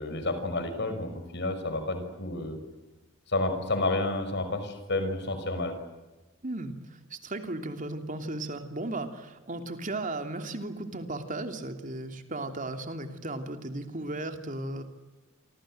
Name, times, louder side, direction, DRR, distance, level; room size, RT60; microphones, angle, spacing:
voice 1, 0.0-2.6 3.3-5.7, left 2 dB, 55° left, 8 dB, 6.1 m, -30 dB
voice 2, 6.4-14.8, right 2 dB, 40° right, 6 dB, 3.0 m, -35 dB
28.5 x 25.0 x 7.9 m, 1.1 s
head